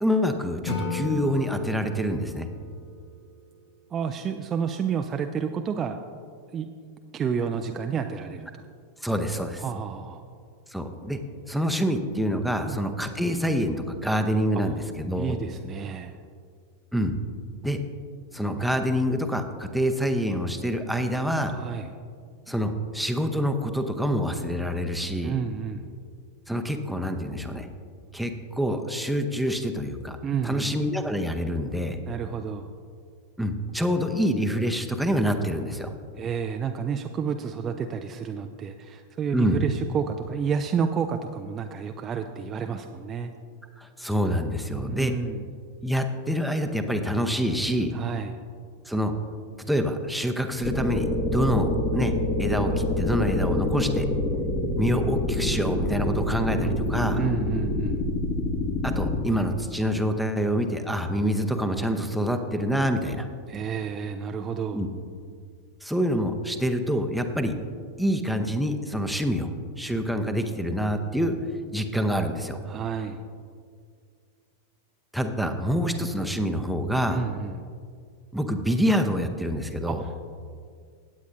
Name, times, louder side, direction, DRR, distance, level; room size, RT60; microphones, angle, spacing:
voice 1, 0.0-2.5 9.0-9.6 10.7-11.2 11.5-15.4 16.9-17.1 17.6-17.8 18.3-21.6 22.5-25.4 26.5-27.7 28.1-30.2 30.4-32.0 33.4-35.9 39.3-39.6 43.8-45.1 45.8-47.9 48.9-49.1 49.7-52.1 52.4-54.1 54.8-57.2 58.8-63.3 64.7-64.9 65.8-67.5 68.0-69.5 69.8-71.4 71.7-72.6 75.1-77.2 78.3-80.0, equal, ahead, 5 dB, 0.8 m, -26 dB
Acoustic guitar / Strum, 0.7-3.8, left 3 dB, 55° left, 1.7 m, -35 dB
voice 2, 3.9-6.0 6.5-6.7 7.1-8.6 9.6-10.2 12.7-12.8 15.2-16.2 21.5-21.9 25.2-25.9 30.2-30.7 32.1-32.7 36.2-43.3 44.8-45.4 47.9-48.3 57.1-58.0 63.5-64.8 72.7-73.2 77.1-77.6 79.9-80.2, right 6 dB, 25° right, 6 dB, 0.4 m, -30 dB
sound 1, 50.6-59.2, left 1 dB, 30° left, 1.4 m, -27 dB
17.5 x 8.3 x 2.6 m, 2.2 s
figure-of-eight pair, 90°, 0 cm